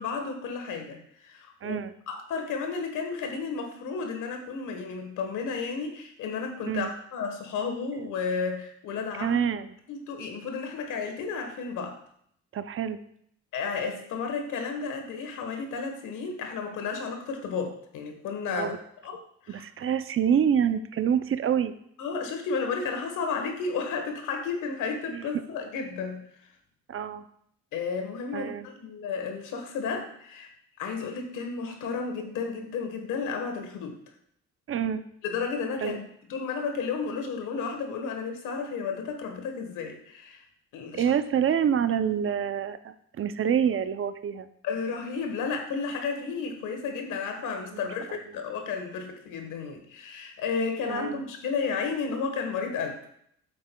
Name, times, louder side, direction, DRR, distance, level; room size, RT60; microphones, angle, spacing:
voice 1, 0.0-1.8 2.1-9.4 9.9-12.0 13.5-18.7 19.0-19.2 19.4-19.6 22.0-26.2 27.7-30.5 30.8-34.0 35.2-36.0 36.3-40.4 40.7-41.1 44.6-53.1, left 5 dB, 90° left, 5 dB, 1.3 m, -32 dB
voice 2, 1.6-1.9 6.7-6.9 9.2-9.7 12.5-13.0 18.6-18.8 19.5-21.7 25.1-25.3 26.9-27.2 28.3-28.7 34.7-35.1 35.8-36.0 40.9-44.5 50.9-51.2, right 8 dB, 45° right, 11 dB, 0.5 m, -27 dB
8.5 x 7.7 x 2.3 m, 0.69 s
cardioid pair, 90°, 30 cm